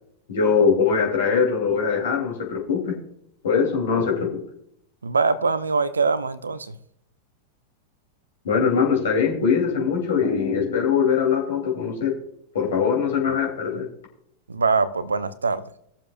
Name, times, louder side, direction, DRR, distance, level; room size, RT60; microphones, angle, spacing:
voice 1, 0.3-3.0 3.4-4.4 8.4-12.1 12.5-13.9, left 6 dB, 60° left, 0 dB, 3.2 m, -22 dB
voice 2, 5.0-6.8 14.5-15.6, right 4 dB, 75° right, 14 dB, 0.7 m, -23 dB
21.0 x 7.2 x 2.5 m, 0.74 s
figure-of-eight pair, 90°, 0 cm